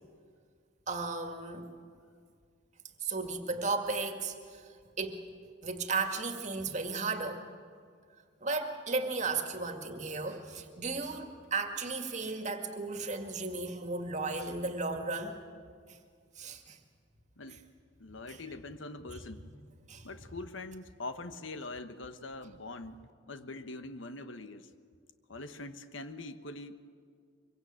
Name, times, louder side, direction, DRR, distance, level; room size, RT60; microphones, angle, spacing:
voice 1, 0.9-1.7 3.0-4.7 5.0-5.2 5.6-7.4 8.4-15.4 15.9-16.0 16.4-16.8 18.3-18.4 19.1-19.2 19.9-20.1, right 3 dB, 40° right, 5 dB, 2.0 m, -35 dB
voice 2, 18.0-19.4 20.0-23.0 23.3-24.7 25.3-26.9, left 2 dB, 80° left, 10 dB, 1.2 m, -43 dB
24.0 x 23.0 x 8.9 m, 2.1 s
head